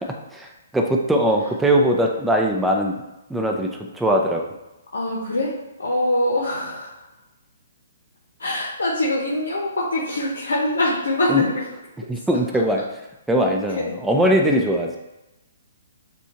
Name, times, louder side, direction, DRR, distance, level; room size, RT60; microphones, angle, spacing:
voice 1, 0.0-4.5 11.3-11.4 12.1-13.0 13.3-15.0, equal, 5° right, 1 dB, 0.5 m, -21 dB
voice 2, 4.9-5.5 5.8-6.9 8.4-11.6 13.8-13.9, left 1 dB, 85° left, -4 dB, 0.8 m, -23 dB
6.9 x 2.3 x 2.9 m, 0.98 s
hypercardioid pair, 140°, 0 cm